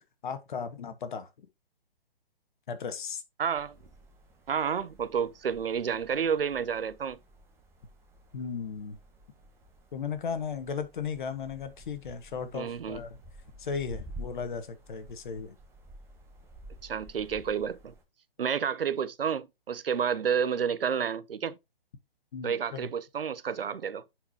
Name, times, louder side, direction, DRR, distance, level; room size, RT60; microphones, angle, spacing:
voice 1, 0.2-1.3 2.7-3.2 8.3-9.0 9.9-13.2 13.6-15.6 22.3-22.9, left 6 dB, 55° left, 1.5 m, -36 dB
voice 2, 3.4-3.7 4.5-7.2 12.5-13.0 16.8-17.9 18.4-21.6 22.4-24.0, right 7 dB, 75° right, 0.8 m, -30 dB
sound 1, 3.5-18.0, right 1 dB, 10° right, 1.3 m, -51 dB
10.0 x 4.8 x 2.8 m
hypercardioid pair, 145°, 29 cm